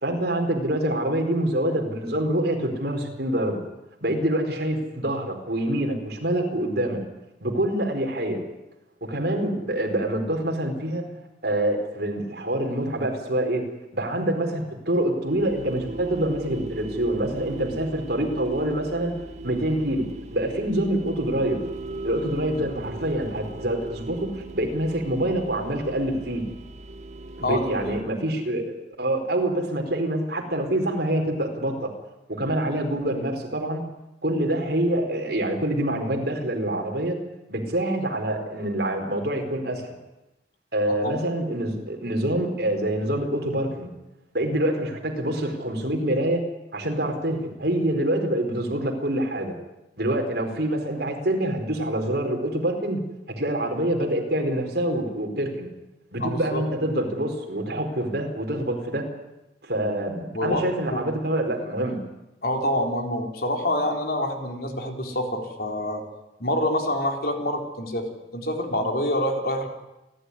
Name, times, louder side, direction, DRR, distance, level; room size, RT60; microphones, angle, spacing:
voice 1, 0.0-3.6 4.0-7.0 7.4-8.4 9.0-11.0 11.4-13.7 13.9-19.2 19.4-21.6 22.0-26.4 27.4-31.9 32.3-33.8 34.2-37.2 37.5-39.9 40.7-43.9 44.3-46.4 46.7-49.5 50.0-53.0 53.4-55.7 56.1-59.1 59.6-62.0, right 1 dB, 60° right, 2 dB, 4.6 m, -26 dB
sound 1, 15.2-28.0, right 2 dB, 40° right, 1.4 m, -38 dB
voice 2, 27.4-27.9 56.2-56.6 60.3-60.6 60.9-61.1 62.4-66.0 66.4-69.7, left 1 dB, 60° left, 3 dB, 3.8 m, -26 dB
29.5 x 12.5 x 9.8 m, 0.95 s
head